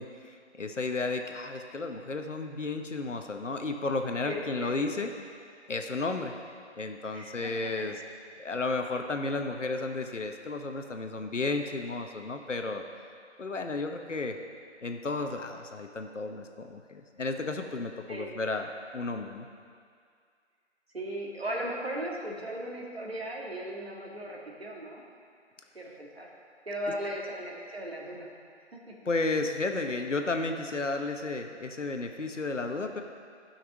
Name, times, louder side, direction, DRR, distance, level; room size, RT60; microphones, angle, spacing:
voice 1, 0.0-5.1 5.7-6.3 6.7-8.0 8.4-12.8 13.4-14.4 14.8-19.5 29.1-33.0, left 3 dB, 85° left, 5 dB, 1.1 m, -33 dB
voice 2, 4.2-4.7 7.1-7.9 18.1-18.3 20.9-25.0 25.7-26.3 26.7-28.3 28.7-29.0, right 1 dB, 55° right, -2 dB, 2.0 m, -37 dB
13.0 x 5.9 x 5.2 m, 2.2 s
figure-of-eight pair, 175°, 36 cm